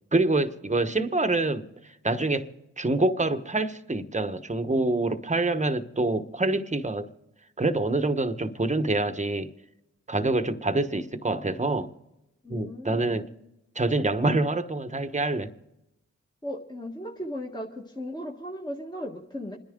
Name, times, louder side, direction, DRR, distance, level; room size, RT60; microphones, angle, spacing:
voice 1, 0.1-1.7 2.0-2.5 2.8-7.1 7.6-9.5 10.1-11.9 12.5-13.3 13.7-15.5, right 2 dB, 25° right, 1.2 m, -26 dB
voice 2, 12.4-13.3 16.4-19.6, equal, 15° left, 1.6 m, -36 dB
27.5 x 10.5 x 3.8 m
cardioid pair, 40°, 31 cm